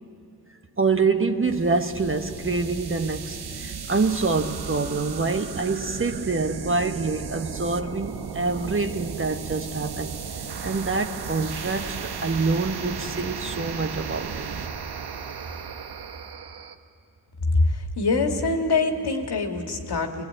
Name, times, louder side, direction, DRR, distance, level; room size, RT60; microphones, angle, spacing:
voice 1, 0.8-10.1 10.6-14.5, right 4 dB, 30° right, 7 dB, 1.2 m, -26 dB
sound 1, 1.4-16.7, right 6 dB, 65° right, 1.1 m, -35 dB
voice 2, 17.6-20.2, left 3 dB, 65° left, 3 dB, 2.1 m, -24 dB
22.5 x 20.0 x 8.7 m, 2.7 s
cardioid pair, 60°, 42 cm